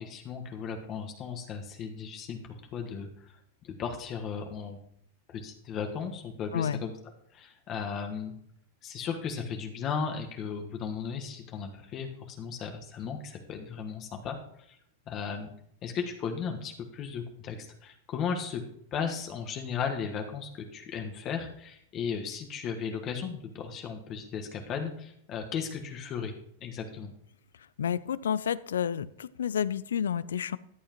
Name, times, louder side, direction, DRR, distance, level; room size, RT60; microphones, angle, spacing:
voice 1, 0.0-4.8 5.3-6.9 7.3-8.3 8.8-14.8 15.1-15.5 15.8-18.6 18.9-26.3 26.6-27.1, left 6 dB, 40° left, 4 dB, 1.3 m, -36 dB
voice 2, 6.5-6.8 27.8-30.6, left 8 dB, 85° left, 19 dB, 0.4 m, -30 dB
14.0 x 8.7 x 3.0 m, 0.71 s
hypercardioid pair, 110°, 0 cm